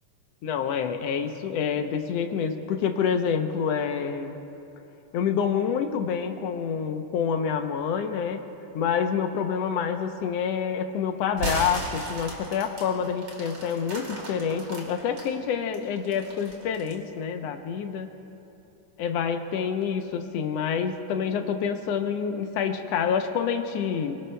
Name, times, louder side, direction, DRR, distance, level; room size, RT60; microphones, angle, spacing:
voice 1, 0.4-4.4 5.1-8.4 8.7-18.1 19.0-24.2, left 7 dB, 70° left, 6 dB, 1.7 m, -27 dB
sound 1, 11.3-15.3 15.7-17.0, right 1 dB, 40° right, 2.8 m, -35 dB
26.5 x 17.5 x 2.2 m, 2.8 s
omnidirectional pair, 3.4 m